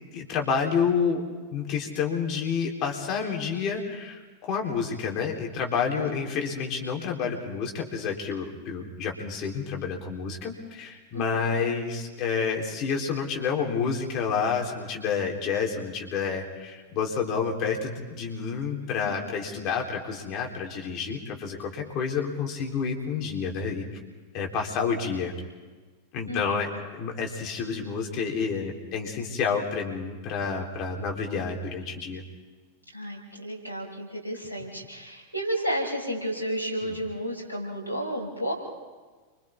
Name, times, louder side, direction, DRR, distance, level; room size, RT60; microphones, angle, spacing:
voice 1, 0.1-1.2 1.5-23.9 24.3-25.3 26.1-26.7 27.0-32.2, left 6 dB, 35° left, 1 dB, 3.6 m, -29 dB
voice 2, 11.1-11.6 19.0-19.1 26.3-26.7 32.9-38.5, equal, 85° right, -3 dB, 5.5 m, -32 dB
30.0 x 24.0 x 3.6 m, 1.4 s
figure-of-eight pair, 90°, 0 cm